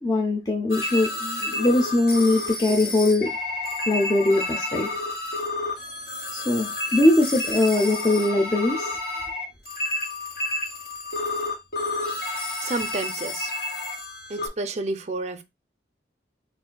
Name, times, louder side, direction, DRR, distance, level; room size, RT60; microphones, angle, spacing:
voice 1, 0.0-3.3 3.9-4.9 6.3-8.9, left 2 dB, 20° left, 0.5 m, -21 dB
sound 1, 0.7-14.5, left 2 dB, 55° left, 1.7 m, -30 dB
voice 2, 12.6-13.5 14.3-15.4, right 3 dB, 35° right, 0.4 m, -30 dB
6.2 x 2.5 x 2.2 m
head